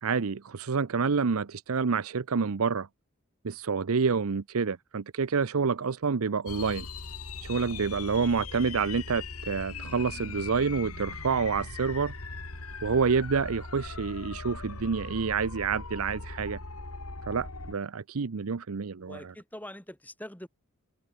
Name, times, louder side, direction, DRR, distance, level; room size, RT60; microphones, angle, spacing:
voice 1, 0.0-2.9 3.4-6.9 7.4-12.1 12.8-16.6 17.2-19.3, right 5 dB, 80° right, 0.6 m, -28 dB
sound 1, 6.5-17.7, left 3 dB, 90° left, 3.1 m, -40 dB
voice 2, 19.0-20.5, left 1 dB, 10° left, 4.0 m, -45 dB
head